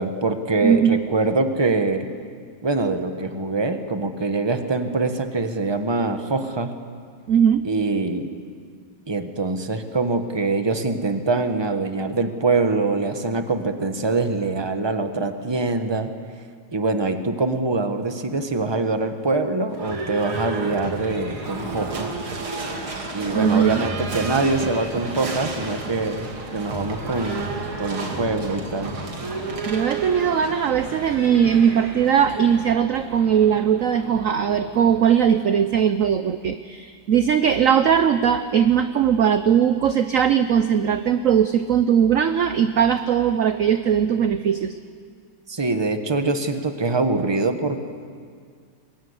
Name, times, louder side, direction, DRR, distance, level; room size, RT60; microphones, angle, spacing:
voice 1, 0.0-2.1 2.6-6.7 7.6-8.3 9.1-16.1 16.7-22.1 23.1-29.0 45.5-47.8, right 3 dB, 15° right, 7 dB, 1.2 m, -24 dB
voice 2, 0.6-1.0 7.3-7.7 23.3-23.8 29.7-44.8, right 8 dB, 60° right, 10 dB, 0.8 m, -19 dB
Livestock farm animals working animals / Bell, 19.7-35.6, right 3 dB, 90° right, 3.6 m, -32 dB
23.0 x 21.0 x 9.8 m, 2.1 s
omnidirectional pair, 2.2 m